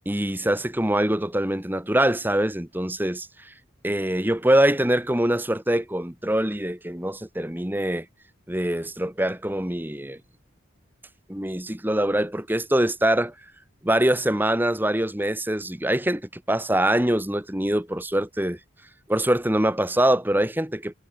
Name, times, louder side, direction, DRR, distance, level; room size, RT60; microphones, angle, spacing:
voice 1, 0.1-3.5 3.8-8.1 8.5-10.2 11.3-13.3 13.8-18.6 19.1-20.9, right 1 dB, 10° right, 1.4 m, -24 dB
head